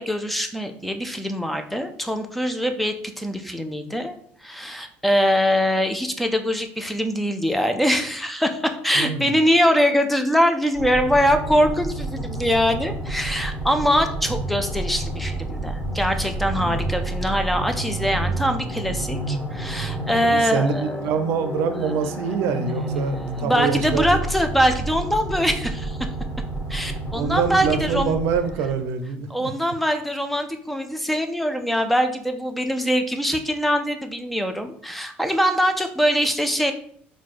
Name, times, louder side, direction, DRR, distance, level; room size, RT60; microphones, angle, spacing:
voice 1, 0.0-4.1 4.4-21.0 23.4-26.1 26.7-28.1 29.3-36.7, equal, ahead, 7 dB, 0.5 m, -23 dB
voice 2, 8.9-9.3 14.3-14.5 16.6-16.9 20.2-24.2 27.1-29.5, right 6 dB, 70° right, 8 dB, 0.5 m, -25 dB
sound 1, 10.7-28.8, right 1 dB, 30° left, 1.2 m, -30 dB
4.6 x 2.3 x 4.2 m, 0.62 s
cardioid pair, 115°, 5 cm